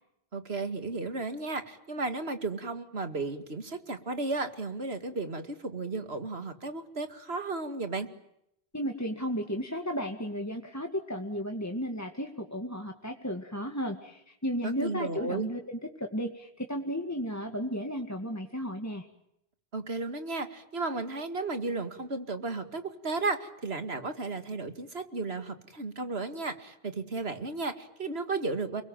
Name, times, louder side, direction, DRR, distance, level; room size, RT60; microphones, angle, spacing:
voice 1, 0.3-8.1 14.6-15.5 19.7-28.8, right 3 dB, 80° right, 9 dB, 2.5 m, -34 dB
voice 2, 8.7-19.1, equal, 15° left, 3 dB, 2.2 m, -34 dB
30.0 x 21.5 x 9.0 m, 0.80 s
omnidirectional pair, 1.0 m